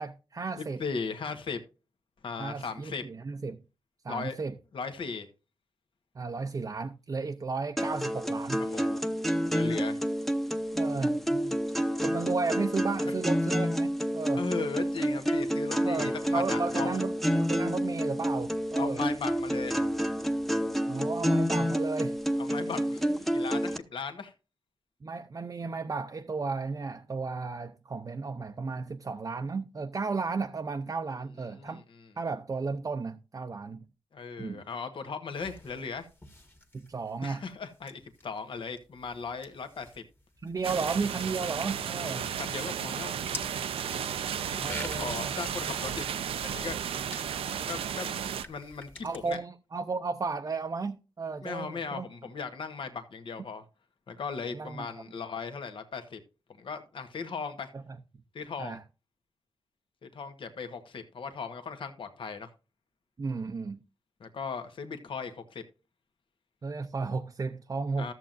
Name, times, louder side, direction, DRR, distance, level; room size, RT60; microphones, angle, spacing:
voice 1, 0.0-0.8 2.4-3.6 4.0-4.5 6.2-8.6 10.7-11.6 12.0-14.4 15.8-19.0 20.9-22.2 25.0-31.8 32.2-33.9 34.4-34.6 36.7-37.4 40.4-42.2 44.6-45.3 49.0-52.1 54.5-54.9 58.6-58.8 63.2-63.8 66.6-68.1, right 4 dB, 40° right, 0.6 m, -34 dB
voice 2, 0.6-1.6 2.2-3.0 4.1-4.4 4.7-5.3 8.7-8.9 9.5-10.0 12.0-12.1 14.4-17.0 18.8-19.8 22.4-24.3 31.5-31.8 34.1-36.1 37.2-40.0 42.0-43.1 44.5-46.0 46.4-46.8 47.5-49.4 51.4-53.6 54.1-56.2 56.6-57.7 58.3-58.8 60.0-62.5 64.2-65.6 68.0-68.1, left 5 dB, 65° left, 1.3 m, -37 dB
sound 1, 7.8-23.8, equal, ahead, 0.8 m, -29 dB
sound 2, 35.3-49.4, left 1 dB, 20° left, 1.7 m, -48 dB
sound 3, 40.6-48.4, right 8 dB, 90° right, 0.6 m, -34 dB
13.5 x 7.4 x 2.6 m
cardioid pair, 85°, 10 cm